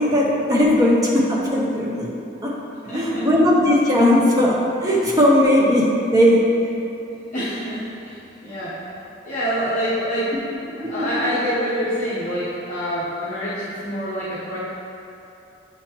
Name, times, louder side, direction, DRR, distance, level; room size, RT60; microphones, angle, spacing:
voice 1, 0.0-2.1 2.4-2.5 2.8-6.4, left 1 dB, 20° right, -4 dB, 0.7 m, -17 dB
voice 2, 2.9-3.3 7.3-8.8 9.2-10.4 10.7-14.7, equal, 40° left, -12 dB, 1.0 m, -26 dB
7.7 x 4.3 x 3.0 m, 2.8 s
head